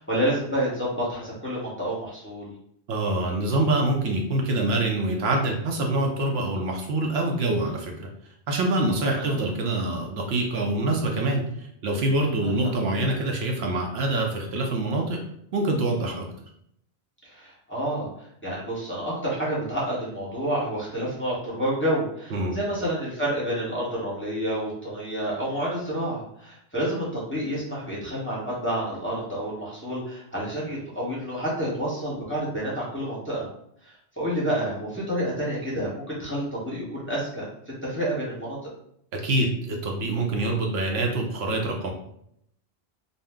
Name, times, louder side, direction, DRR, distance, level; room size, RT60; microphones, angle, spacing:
voice 1, 0.0-2.5 9.1-9.4 12.4-12.7 17.2-33.5 33.8-37.4 37.8-38.6, right 1 dB, 10° left, -7 dB, 0.8 m, -29 dB
voice 2, 2.9-8.1 8.5-15.2 15.5-16.3 22.3-22.6 39.1-41.9, right 2 dB, 70° right, 0 dB, 0.8 m, -25 dB
2.6 x 2.0 x 3.4 m, 0.71 s
omnidirectional pair, 1.1 m